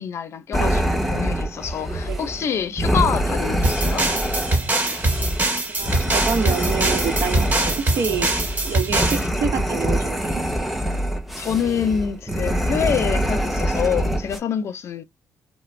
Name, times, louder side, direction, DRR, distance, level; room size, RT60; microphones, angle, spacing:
voice 1, 0.0-4.1 11.4-15.0, left 8 dB, 55° left, 0.5 m, -26 dB
sound 1, 0.5-14.4, equal, ahead, 0.8 m, -24 dB
sound 2, 3.6-9.3, right 2 dB, 30° right, 1.5 m, -23 dB
voice 2, 5.7-8.3 8.6-10.4, right 6 dB, 65° right, 0.8 m, -27 dB
2.4 x 2.1 x 3.2 m
cardioid pair, 85°, 5 cm